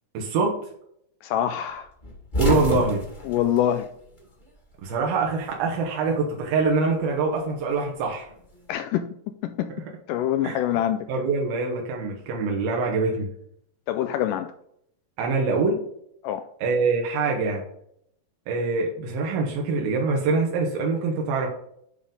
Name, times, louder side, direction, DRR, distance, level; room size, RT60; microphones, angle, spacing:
voice 1, 0.1-0.6 2.4-3.0 4.8-8.3 10.4-10.6 11.1-13.3 15.2-15.8 16.6-17.6 18.5-21.5, right 4 dB, 90° right, 0 dB, 3.0 m, -24 dB
voice 2, 1.2-1.9 3.3-3.9 8.7-9.7 10.1-11.0 13.9-14.5 16.2-16.4, left 11 dB, 85° left, 9 dB, 1.9 m, -25 dB
sound 1, 2.0-4.6 4.8-5.9 7.1-8.6, left 2 dB, 20° left, 1.5 m, -29 dB
10.0 x 3.8 x 5.1 m, 0.70 s
omnidirectional pair, 4.1 m